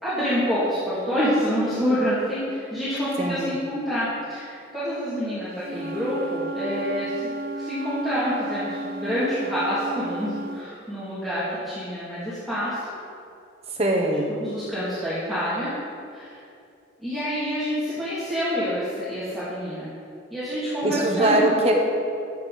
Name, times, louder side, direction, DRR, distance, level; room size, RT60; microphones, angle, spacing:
voice 1, 0.0-12.9 14.3-15.7 16.1-16.3 17.0-19.9 20.3-21.6, equal, ahead, -14 dB, 2.4 m, -27 dB
voice 2, 3.2-3.5 13.8-14.3 20.8-21.7, right 1 dB, 35° right, 1 dB, 1.2 m, -22 dB
Wind instrument woodwind instrument, 5.6-10.7, right 2 dB, 50° right, 0.5 m, -33 dB
13.5 x 8.7 x 4.1 m, 2.5 s
head